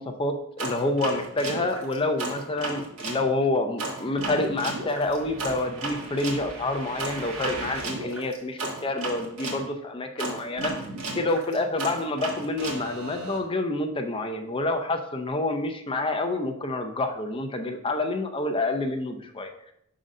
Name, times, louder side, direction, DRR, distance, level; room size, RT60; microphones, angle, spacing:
voice 1, 0.0-10.7 11.1-19.5, left 2 dB, 25° left, 6 dB, 0.5 m, -28 dB
sound 1, 0.6-3.2 3.8-9.6 10.2-13.4, right 2 dB, 80° right, 1.6 m, -34 dB
5.1 x 3.8 x 5.3 m, 0.76 s
head